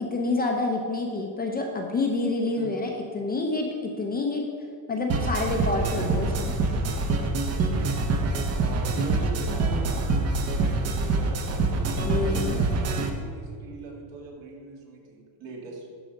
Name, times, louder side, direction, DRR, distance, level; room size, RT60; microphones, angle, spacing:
voice 1, 0.0-4.4 4.9-6.5 12.0-12.6, left 3 dB, 20° left, 1 dB, 0.6 m, -28 dB
sound 1, 5.1-13.1, right 3 dB, 30° right, 0.8 m, -25 dB
voice 2, 8.5-11.8 12.1-15.9, right 3 dB, 60° right, -1 dB, 2.2 m, -41 dB
12.0 x 4.8 x 5.2 m, 2.2 s
cardioid pair, 160°, 48 cm